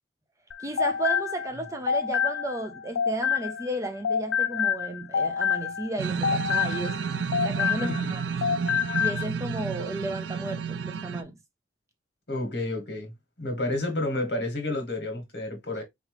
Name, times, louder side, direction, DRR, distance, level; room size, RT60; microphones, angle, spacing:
sound 1, 0.5-3.8 4.0-8.1 8.4-9.2, left 7 dB, 90° left, 0.3 m, -27 dB
voice 1, 0.6-7.0 7.4-8.2 9.0-11.4, right 1 dB, 15° right, 0.6 m, -33 dB
sound 2, 6.0-11.2, right 6 dB, 85° right, 0.4 m, -31 dB
voice 2, 7.8-8.1 12.3-13.1 13.4-15.8, left 2 dB, 70° left, 1.5 m, -30 dB
3.8 x 3.1 x 3.2 m
head